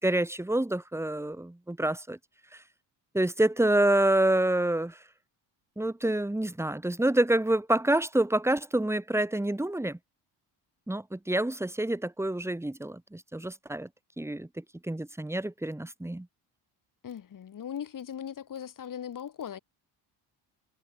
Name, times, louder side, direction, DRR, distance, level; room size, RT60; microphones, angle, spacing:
voice 1, 0.0-2.2 2.5-2.6 3.1-5.0 5.8-10.0 10.9-13.9 14.2-16.3, right 1 dB, 5° right, 4.8 m, -27 dB
voice 2, 17.0-19.6, left 9 dB, 50° left, 7.3 m, -39 dB
cardioid pair, 145°, 42 cm